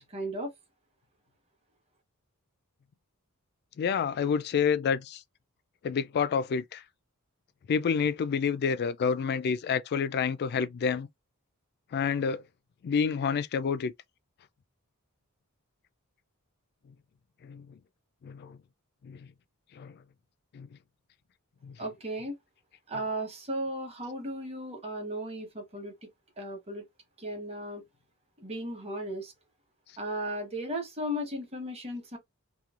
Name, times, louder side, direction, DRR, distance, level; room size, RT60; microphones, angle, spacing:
voice 1, 0.1-0.5 21.8-22.4 22.9-25.9 26.4-26.8 27.2-27.8 28.4-29.3 30.0-32.2, right 1 dB, 30° right, 1.0 m, -35 dB
voice 2, 3.8-5.2 5.8-6.8 7.7-11.1 11.9-12.4 12.8-13.9 17.4-17.7 18.2-18.6 19.0-19.2 19.8-19.9 20.5-20.7 21.6-21.7, left 6 dB, 45° left, 0.3 m, -28 dB
2.9 x 2.3 x 2.4 m
head